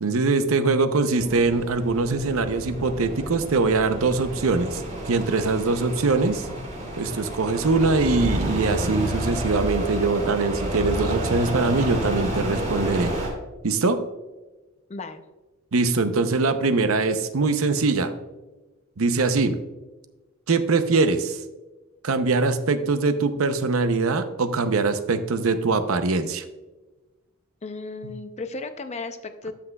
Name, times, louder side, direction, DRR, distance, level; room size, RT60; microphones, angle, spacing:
voice 1, 0.0-4.8 5.1-6.6 7.0-13.1 13.6-14.0 15.7-18.1 19.0-19.6 20.5-21.4 22.0-26.4, right 3 dB, 70° right, 10 dB, 0.7 m, -22 dB
sound 1, 1.2-13.3, equal, 35° right, 2.5 m, -30 dB
voice 2, 14.9-15.2 27.6-29.5, left 3 dB, 30° left, 9 dB, 0.5 m, -34 dB
13.0 x 5.9 x 2.3 m, 1.2 s
head